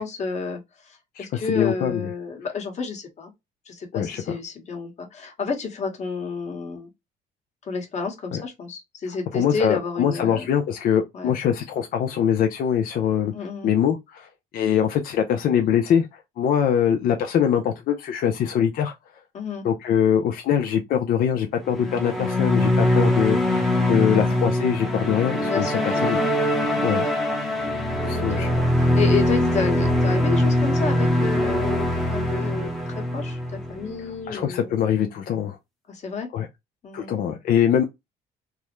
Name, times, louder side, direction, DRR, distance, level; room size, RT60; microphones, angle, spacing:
voice 1, 0.0-3.3 3.6-6.9 7.6-10.5 11.1-11.3 13.3-13.7 19.3-19.7 23.9-24.4 25.4-26.2 26.6-26.8 28.1-34.7 35.9-36.3 36.8-37.1, left 5 dB, 45° left, 1.2 m, -31 dB
voice 2, 1.2-2.1 3.9-4.2 8.3-8.4 9.3-13.3 13.6-14.3 14.5-16.1 16.4-18.9 19.6-26.2 26.8-27.1 28.0-28.5 34.3-35.6 36.3-36.5 36.9-37.8, left 8 dB, 60° left, 0.5 m, -23 dB
sound 1, 21.6-34.1, left 1 dB, ahead, 0.8 m, -22 dB
3.5 x 2.1 x 3.0 m
cardioid pair, 110°, 17 cm